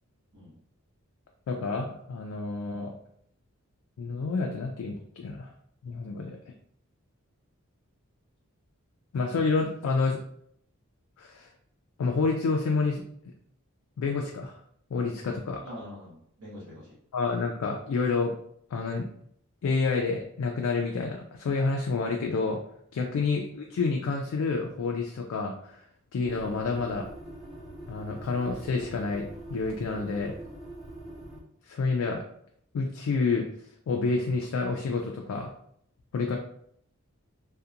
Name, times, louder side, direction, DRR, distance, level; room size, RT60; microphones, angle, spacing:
voice 1, 1.5-3.0 4.0-5.5 5.8-6.4 9.1-10.2 11.2-11.5 12.0-13.0 14.0-14.6 14.9-15.6 17.1-18.3 18.7-19.1 19.6-22.6 22.9-25.8 26.1-27.1 27.9-30.4 31.7-32.2 32.7-33.5 33.9-35.5 36.1-36.4, left 4 dB, 80° left, 1 dB, 0.3 m, -29 dB
voice 2, 15.6-17.0, equal, 80° right, -9 dB, 0.9 m, -45 dB
sound 1, 26.2-31.4, right 1 dB, ahead, 0.4 m, -43 dB
2.7 x 2.1 x 2.4 m, 0.68 s
head